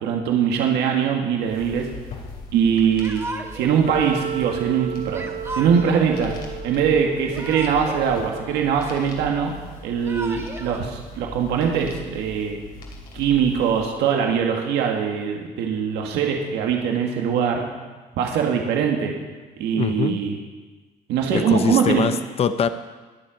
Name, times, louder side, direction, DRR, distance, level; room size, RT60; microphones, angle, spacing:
voice 1, 0.0-1.9 2.5-3.2 3.5-5.3 5.5-6.3 6.6-9.5 9.8-12.6 13.1-17.7 18.2-19.1 19.6-20.4 21.1-22.1, right 7 dB, 85° right, 1 dB, 1.7 m, -22 dB
sound 1, 1.4-13.9, left 2 dB, 65° left, 3.1 m, -40 dB
Yell / Crying sobbing, 3.0-3.8 5.1-6.1 7.1-8.1 8.4-9.3 9.9-10.8, right 2 dB, 15° right, 1.4 m, -35 dB
Wind instrument woodwind instrument, 3.8-8.9, right 9 dB, 50° right, 0.7 m, -34 dB
voice 2, 19.7-20.2 21.3-22.7, left 7 dB, 35° left, 11 dB, 0.7 m, -23 dB
21.5 x 7.7 x 5.1 m, 1.3 s
cardioid pair, 110°, 17 cm